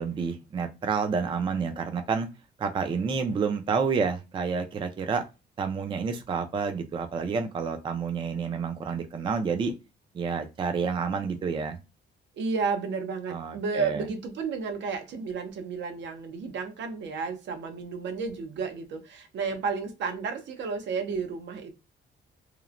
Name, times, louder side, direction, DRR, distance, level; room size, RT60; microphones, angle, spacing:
voice 1, 0.0-2.3 2.6-5.2 5.6-9.7 10.1-11.8 13.3-14.0, right 5 dB, 25° right, 0.3 m, -29 dB
voice 2, 12.4-21.7, right 5 dB, 70° right, 0.7 m, -32 dB
3.0 x 2.0 x 2.4 m
cardioid pair, 150°, 19 cm